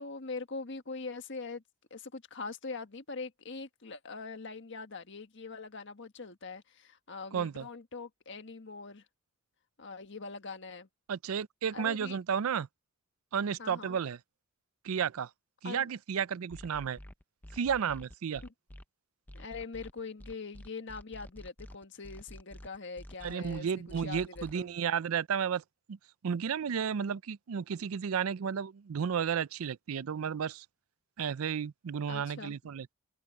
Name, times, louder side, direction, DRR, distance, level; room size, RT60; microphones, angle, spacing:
voice 1, 0.0-1.6 1.9-9.0 9.8-10.9 11.7-12.2 13.6-14.0 15.6-15.9 18.4-18.5 19.3-24.7 32.1-32.6, left 4 dB, 60° left, 1.6 m, -42 dB
voice 2, 7.3-7.7 11.1-12.7 13.3-14.2 14.8-15.3 15.6-17.0 17.5-18.4 23.2-25.6 25.9-26.0 26.2-30.7 31.2-32.9, right 7 dB, 85° right, 0.4 m, -32 dB
sound 1, 16.5-18.8 19.3-24.6, left 1 dB, 10° left, 0.5 m, -49 dB
head